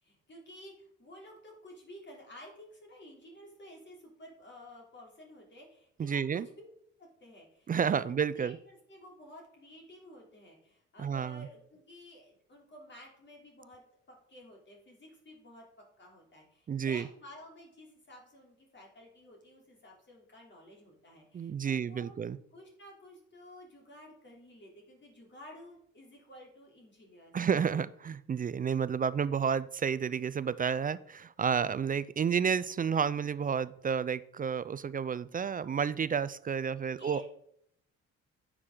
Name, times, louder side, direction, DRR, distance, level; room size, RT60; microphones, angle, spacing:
voice 1, 0.0-6.7 7.0-7.7 8.0-13.8 14.1-22.1 22.5-27.3 36.9-37.2, equal, 35° left, 0 dB, 3.2 m, -52 dB
voice 2, 6.0-6.5 7.7-8.6 11.0-11.5 16.7-17.0 21.3-22.4 27.3-37.2, right 7 dB, 30° right, 17 dB, 0.3 m, -31 dB
9.6 x 6.2 x 3.8 m, 0.71 s
cardioid pair, 90°, 30 cm